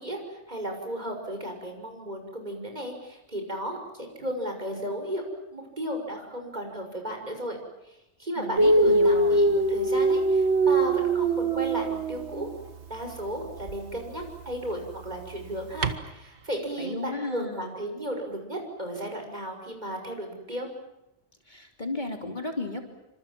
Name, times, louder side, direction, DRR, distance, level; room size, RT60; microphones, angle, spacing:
voice 1, 0.0-5.2 5.5-7.6 7.8-12.5 12.9-20.7, right 1 dB, 35° right, 3 dB, 6.3 m, -34 dB
voice 2, 8.4-9.4 16.8-17.7 21.5-22.8, left 2 dB, 40° left, 3 dB, 3.2 m, -34 dB
Dog, 8.6-12.5 13.6-13.8 15.8-16.0, right 2 dB, 70° right, 1.7 m, -22 dB
28.0 x 26.0 x 7.5 m, 0.93 s
omnidirectional pair, 1.2 m